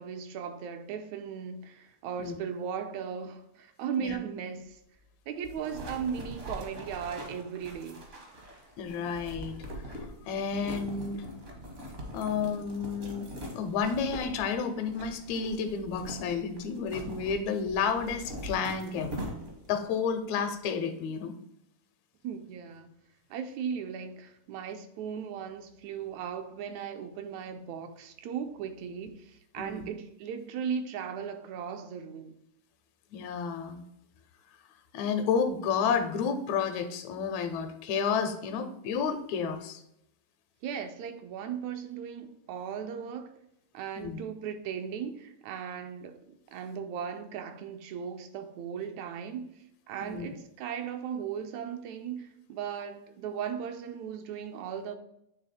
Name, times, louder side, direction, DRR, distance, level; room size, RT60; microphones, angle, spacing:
voice 1, 0.0-4.8 5.3-8.0 22.2-22.9 23.3-32.4 40.6-43.4 43.7-49.5 49.9-55.0, right 7 dB, 80° right, 1.9 m, -37 dB
sound 1, 5.4-19.8, equal, 55° right, 0.8 m, -42 dB
voice 2, 8.8-9.6 9.9-11.3 12.1-13.3 13.5-19.2 19.7-21.3 29.6-29.9 33.1-33.8 34.9-39.8 44.0-44.2 50.0-50.3, left 6 dB, 80° left, 1.9 m, -31 dB
8.9 x 3.3 x 4.2 m
omnidirectional pair, 3.3 m